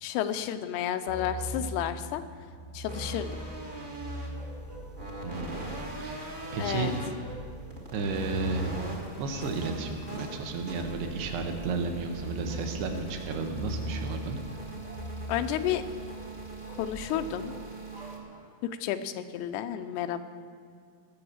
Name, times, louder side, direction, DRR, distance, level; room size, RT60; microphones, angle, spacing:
voice 1, 0.0-2.2 2.7-3.3 6.6-6.9 15.3-15.8 16.8-17.5 18.8-20.2, left 10 dB, 90° left, 9 dB, 2.8 m, -31 dB
sound 1, 1.1-17.6, equal, 50° left, 0.9 m, -42 dB
sound 2, 1.1-1.8 2.8-3.9 4.3-5.4 6.4-6.7 7.2-7.5 8.2-8.4 8.7-8.9 9.3-9.5 10.2-10.4 10.7-11.0 11.5-11.8 12.4-12.7 13.2-13.5 13.8-14.0 14.4-15.1 15.4-15.7 16.0-16.3 16.6-18.7, right 2 dB, 15° right, 0.9 m, -51 dB
sound 3, 2.9-18.2, right 2 dB, 55° right, 0.5 m, -42 dB
voice 2, 5.2-6.9 7.9-8.8 9.2-14.4, right 4 dB, 85° right, 4 dB, 3.3 m, -33 dB
19.5 x 7.0 x 7.3 m, 2.2 s
omnidirectional pair, 4.6 m